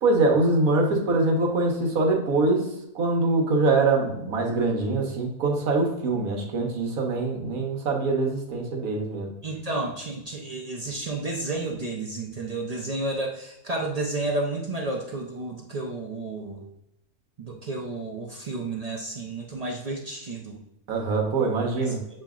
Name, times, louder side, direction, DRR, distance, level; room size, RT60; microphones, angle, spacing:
voice 1, 0.0-2.7 2.9-9.3 20.9-22.0, right 3 dB, 80° right, 1 dB, 1.5 m, -23 dB
voice 2, 9.4-16.6 17.4-20.6 21.4-22.0, right 2 dB, 50° right, -1 dB, 0.4 m, -31 dB
7.4 x 2.8 x 2.4 m, 0.83 s
omnidirectional pair, 1.5 m